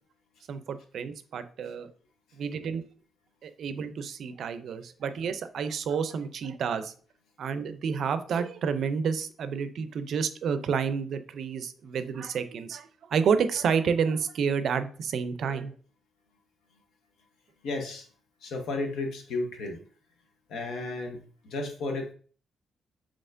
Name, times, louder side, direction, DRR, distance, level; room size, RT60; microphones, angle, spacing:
voice 1, 0.5-1.9 2.3-2.8 3.4-6.9 7.4-15.7, right 6 dB, 70° right, 11 dB, 0.4 m, -30 dB
voice 2, 17.6-18.1 18.4-19.8 20.5-22.1, left 2 dB, 80° left, 4 dB, 0.8 m, -33 dB
4.2 x 3.0 x 2.5 m, 0.42 s
cardioid pair, 85°, 0 cm